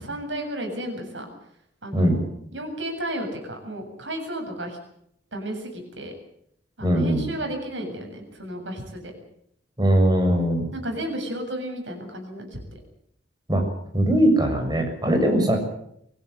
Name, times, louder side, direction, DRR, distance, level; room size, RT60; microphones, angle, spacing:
voice 1, 0.0-1.2 1.8-2.2 2.5-4.8 5.3-6.1 6.8-9.0 10.7-12.6, right 1 dB, 90° right, 4 dB, 7.7 m, -33 dB
voice 2, 6.8-7.2 9.8-10.7 13.5-13.6 13.9-15.6, right 1 dB, 25° right, 4 dB, 6.6 m, -20 dB
24.0 x 16.5 x 8.0 m, 0.72 s
head